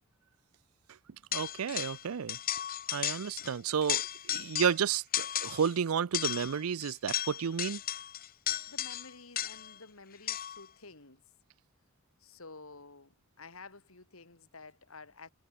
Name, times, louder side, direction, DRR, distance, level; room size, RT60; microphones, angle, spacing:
sound 1, 1.3-2.0 2.3-3.5 3.8-4.8 5.1-5.7 6.1-9.8 10.3-10.7, left 12 dB, 45° left, 1.0 m, -35 dB
voice 1, 1.3-2.4 2.9-7.8, right 7 dB, 90° right, 0.5 m, -31 dB
voice 2, 8.7-11.2 12.2-15.3, left 3 dB, 75° left, 3.0 m, -52 dB
head